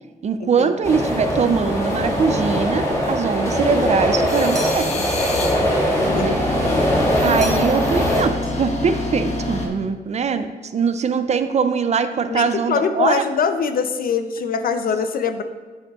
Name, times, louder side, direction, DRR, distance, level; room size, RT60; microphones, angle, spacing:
voice 1, 0.2-5.1 6.1-6.5 7.2-13.3, right 5 dB, 45° right, 10 dB, 0.4 m, -22 dB
sound 1, 0.8-8.2, equal, 20° left, 1.9 m, -21 dB
sound 2, 4.3-5.5 5.9-9.7, left 2 dB, 45° left, 1.1 m, -27 dB
sound 3, 4.5-5.1 7.4-7.9 8.1-8.9, right 1 dB, 20° right, 1.0 m, -36 dB
voice 2, 5.9-7.1 12.3-15.4, left 6 dB, 65° left, 8 dB, 0.5 m, -23 dB
9.0 x 6.4 x 2.4 m, 1.3 s
wide cardioid pair, 120°, 16 cm